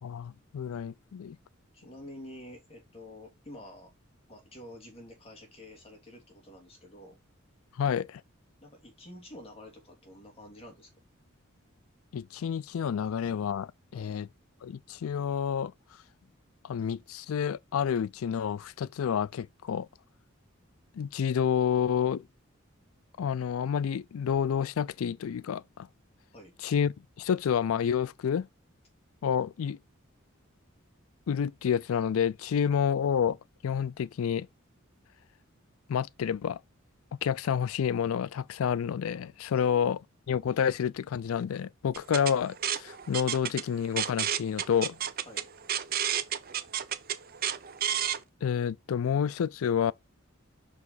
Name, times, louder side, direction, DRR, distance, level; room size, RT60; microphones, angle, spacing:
voice 1, 0.0-1.4 7.8-8.2 12.1-14.3 14.6-15.7 16.6-19.9 20.9-22.2 23.2-25.9 26.6-28.5 29.2-29.8 31.3-33.4 33.6-34.5 35.9-36.6 37.2-40.0 40.3-45.0 48.4-49.9, left 7 dB, 85° left, 0.4 m, -29 dB
voice 2, 1.7-3.9 4.3-7.2 8.6-10.9 13.9-14.1 26.3-26.5 39.5-39.7 45.3-45.5, left 1 dB, 30° left, 2.7 m, -48 dB
sound 1, 41.9-48.2, right 10 dB, 45° right, 0.6 m, -31 dB
5.9 x 4.8 x 4.0 m
head